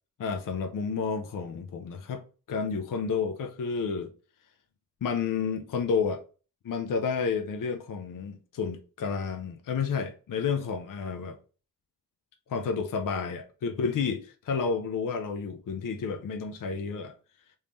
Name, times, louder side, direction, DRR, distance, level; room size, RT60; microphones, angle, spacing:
voice 1, 0.2-4.1 5.0-6.2 6.6-11.4 12.5-17.1, left 5 dB, 55° left, 0.5 m, -31 dB
3.1 x 2.7 x 3.4 m
wide cardioid pair, 160°, 39 cm